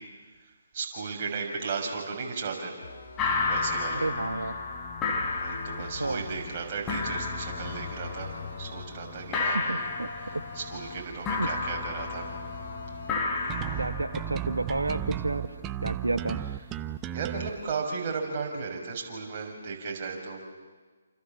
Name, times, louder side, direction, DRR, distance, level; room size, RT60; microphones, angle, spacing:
voice 1, 0.7-2.7 3.4-4.1 5.4-8.3 8.6-9.9 10.1-12.3 17.1-20.4, right 5 dB, 35° right, 0 dB, 6.4 m, -35 dB
sound 1, 2.8-4.3 5.1-6.6 7.5-9.0 9.8-11.2 11.9-13.4, left 4 dB, 55° left, 6.2 m, -44 dB
sound 2, 3.2-17.7, left 4 dB, 15° left, 4.5 m, -33 dB
voice 2, 3.9-4.5 6.0-6.2 9.5-10.4 11.4-11.5 13.8-15.5 15.8-16.4, right 2 dB, 80° right, 8 dB, 1.2 m, -31 dB
sound 3, 13.5-17.5, right 12 dB, 15° right, 0.8 m, -34 dB
28.5 x 28.0 x 7.5 m, 1.4 s
figure-of-eight pair, 140°, 0 cm